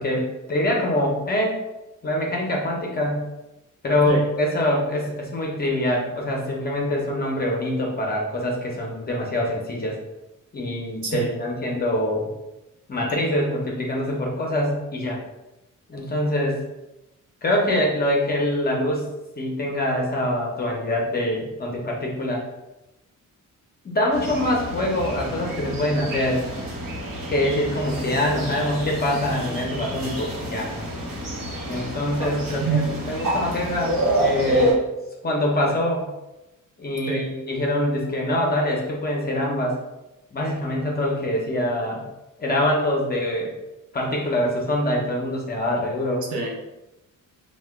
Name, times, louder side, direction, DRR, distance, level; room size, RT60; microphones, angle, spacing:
voice 1, 0.0-1.6 2.0-3.3 3.8-10.0 10.5-12.3 12.9-15.2 15.9-16.6 17.4-19.1 19.4-22.4 23.8-26.4 27.3-30.7 31.7-34.8 35.2-36.1 36.8-39.7 40.3-42.0 42.4-43.5 43.9-46.2, left 1 dB, 30° left, -1 dB, 0.5 m, -24 dB
voice 2, 11.0-11.3 32.6-32.9 37.1-37.3 46.3-46.5, right 4 dB, 65° right, 0 dB, 0.7 m, -25 dB
sound 1, 24.1-34.7, equal, 90° right, 0.9 m, -28 dB
2.7 x 2.1 x 3.3 m, 0.95 s
wide cardioid pair, 165°, 32 cm